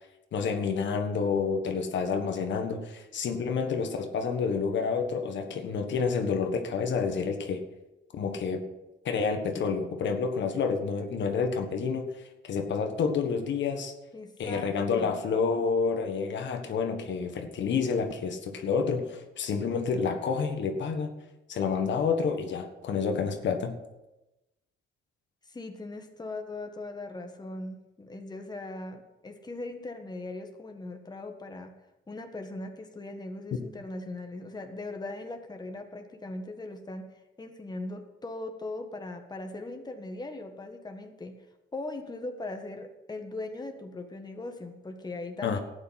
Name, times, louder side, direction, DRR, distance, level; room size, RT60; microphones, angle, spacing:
voice 1, 0.3-7.6 8.2-8.6 9.0-13.9 14.4-21.1 21.5-23.8 45.4-45.6, left 5 dB, 65° left, 5 dB, 1.5 m, -29 dB
voice 2, 14.1-15.2 25.4-31.7 32.1-41.4 41.7-45.6, left 2 dB, 20° left, 4 dB, 1.6 m, -39 dB
13.0 x 8.9 x 5.9 m, 1.0 s
cardioid pair, 90°, 20 cm